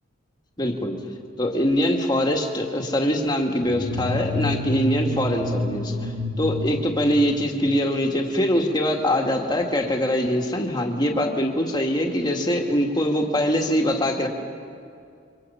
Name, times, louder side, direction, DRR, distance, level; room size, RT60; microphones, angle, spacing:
voice 1, 0.6-1.0 1.4-14.3, equal, 20° left, 2 dB, 1.8 m, -23 dB
sound 1, 3.7-7.8, left 1 dB, 80° right, 1.9 m, -29 dB
28.0 x 24.5 x 5.6 m, 2.4 s
head